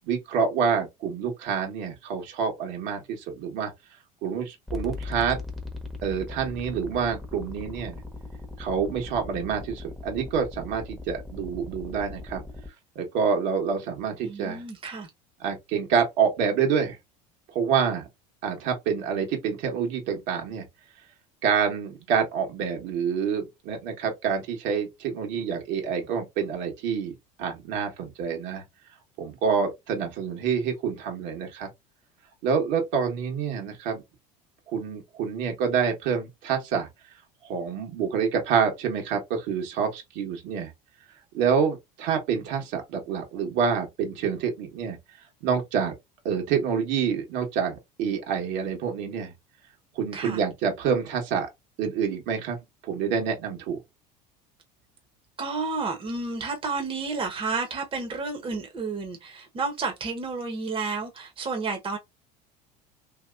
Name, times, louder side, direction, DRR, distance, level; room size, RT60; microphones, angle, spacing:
voice 1, 0.1-3.7 4.2-5.4 6.0-8.0 8.6-12.4 12.9-14.6 15.4-17.0 17.5-18.1 18.4-20.7 21.4-27.1 27.4-28.6 29.2-31.7 32.4-34.0 34.7-36.9 37.4-40.7 41.3-45.0 45.4-46.0 46.2-49.3 49.9-51.5 51.8-52.6 52.8-53.8, right 6 dB, 65° right, 1.4 m, -27 dB
sound 1, 4.7-12.7, left 3 dB, ahead, 1.1 m, -39 dB
voice 2, 14.2-15.1 50.1-50.4 55.4-62.0, right 4 dB, 25° right, 1.1 m, -31 dB
2.9 x 2.8 x 2.4 m
hypercardioid pair, 85°, 20 cm